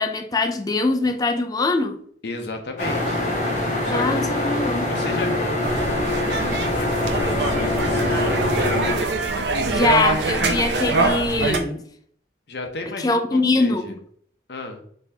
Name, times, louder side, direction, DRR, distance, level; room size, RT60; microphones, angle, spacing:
voice 1, 0.0-2.0 3.9-4.9 9.7-11.8 13.0-13.8, left 3 dB, 20° left, 0.4 m, -22 dB
voice 2, 2.2-3.2 3.8-4.3 4.8-8.9 12.5-13.9 14.5-14.8, left 3 dB, 65° left, 0.8 m, -34 dB
sound 1, 2.8-9.0, left 1 dB, 40° left, 1.7 m, -24 dB
sound 2, 5.6-11.6, right 3 dB, 70° right, 0.5 m, -24 dB
4.2 x 3.3 x 2.8 m
head